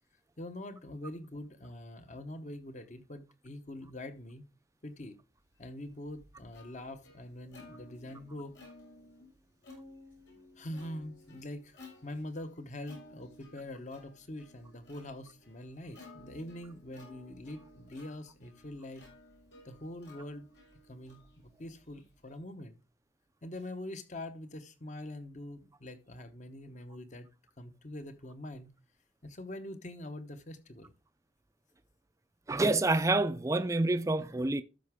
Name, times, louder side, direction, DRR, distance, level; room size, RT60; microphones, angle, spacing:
voice 1, 0.4-4.5 4.8-5.2 5.6-8.6 10.6-19.1 19.6-20.5 20.9-22.8 23.4-27.3 27.6-28.7 29.2-30.9, left 1 dB, 40° left, 1.0 m, -44 dB
Plucked string instrument, 5.6-22.4, left 2 dB, 80° left, 5.1 m, -56 dB
voice 2, 32.5-34.6, right 2 dB, 15° right, 0.4 m, -27 dB
13.0 x 5.8 x 3.6 m
head